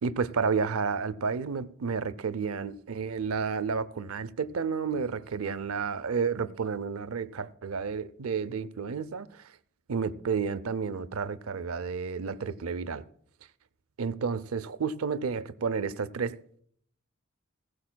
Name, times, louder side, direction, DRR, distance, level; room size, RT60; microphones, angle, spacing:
voice 1, 0.0-9.4 9.9-13.0 14.0-16.4, right 5 dB, 85° right, 0.6 m, -31 dB
16.0 x 16.0 x 2.3 m
head